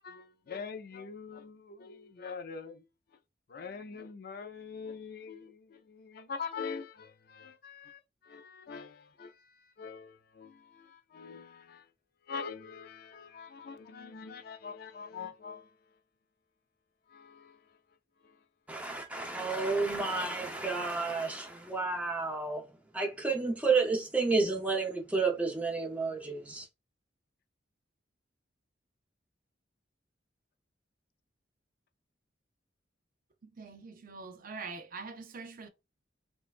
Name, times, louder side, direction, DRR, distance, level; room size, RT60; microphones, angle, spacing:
voice 1, 0.0-2.9 3.5-11.9 12.2-16.0 17.1-17.8 18.2-18.4, left 5 dB, 55° left, 0.4 m, -44 dB
voice 2, 18.7-22.7 22.9-26.7, right 4 dB, 10° right, 0.7 m, -31 dB
voice 3, 33.6-35.7, right 4 dB, 50° right, 0.5 m, -44 dB
4.4 x 2.2 x 2.4 m
head